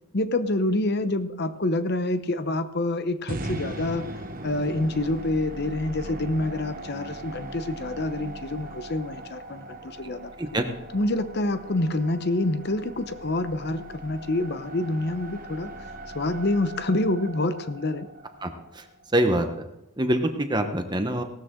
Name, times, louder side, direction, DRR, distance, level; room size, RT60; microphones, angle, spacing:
voice 1, 0.1-4.1 4.4-10.3 10.9-15.7 16.1-18.1, left 2 dB, 50° left, 11 dB, 0.9 m, -27 dB
sound 1, 3.3-19.4, right 1 dB, 40° right, 1.2 m, -40 dB
voice 2, 19.1-19.5 20.0-21.2, right 1 dB, 20° right, 6 dB, 1.0 m, -24 dB
18.0 x 13.0 x 3.8 m, 0.90 s
head